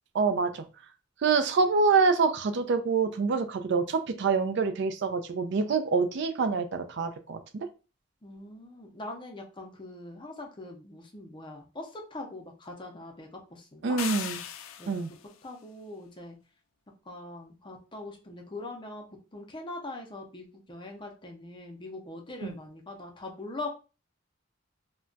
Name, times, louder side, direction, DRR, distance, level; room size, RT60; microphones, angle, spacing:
voice 1, 0.1-0.6 1.2-7.7 13.8-14.4 14.9-15.1 22.4-22.6, right 4 dB, 55° right, 8 dB, 0.4 m, -26 dB
voice 2, 8.2-14.0 14.8-15.0 15.4-16.4 17.1-19.0 19.3-23.7, left 2 dB, 25° left, 2 dB, 0.5 m, -42 dB
sound 1, 14.0-15.2, left 9 dB, 75° left, 0.3 m, -37 dB
2.2 x 2.2 x 3.8 m, 0.32 s
head